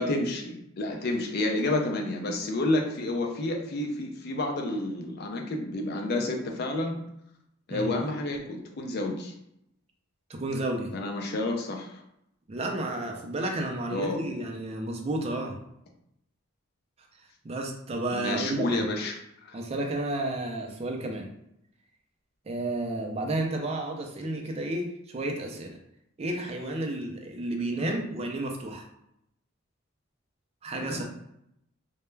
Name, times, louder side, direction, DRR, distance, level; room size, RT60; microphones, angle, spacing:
voice 1, 0.0-7.0 7.7-9.3 10.9-12.0 13.9-14.2 18.1-19.5 27.8-27.9 30.8-31.0, left 2 dB, 50° left, 2 dB, 0.4 m, -30 dB
voice 2, 10.3-11.0 12.5-15.6 17.4-18.8 19.5-21.3 22.5-25.8 26.2-28.9 30.6-31.0, right 2 dB, 30° right, 1 dB, 0.3 m, -31 dB
2.2 x 2.1 x 3.1 m, 0.79 s
head